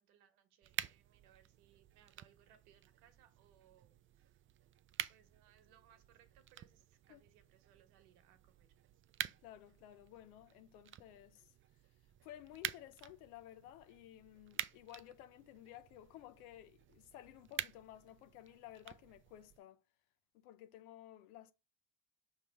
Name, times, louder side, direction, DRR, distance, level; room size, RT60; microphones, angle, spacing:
voice 1, 0.0-4.4 5.1-8.7, right 9 dB, 85° right, 1.2 m, -68 dB
sound 1, 0.6-19.6, right 11 dB, 30° right, 0.4 m, -49 dB
voice 2, 9.4-11.5 12.2-19.8 20.3-21.5, left 13 dB, 90° left, 0.6 m, -55 dB
5.6 x 3.2 x 5.6 m
supercardioid pair, 70°, 43 cm